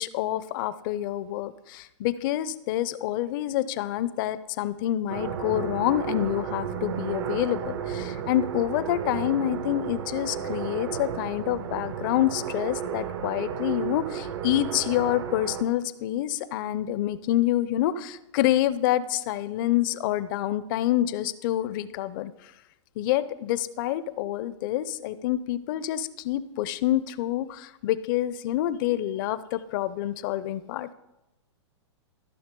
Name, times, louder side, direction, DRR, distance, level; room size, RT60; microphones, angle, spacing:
voice 1, 0.0-22.3 23.0-30.9, left 13 dB, 45° left, 15 dB, 0.5 m, -27 dB
sound 1, 5.1-15.6, right 8 dB, 60° right, 0.9 m, -33 dB
13.5 x 6.1 x 3.8 m, 0.95 s
hypercardioid pair, 125°, 16 cm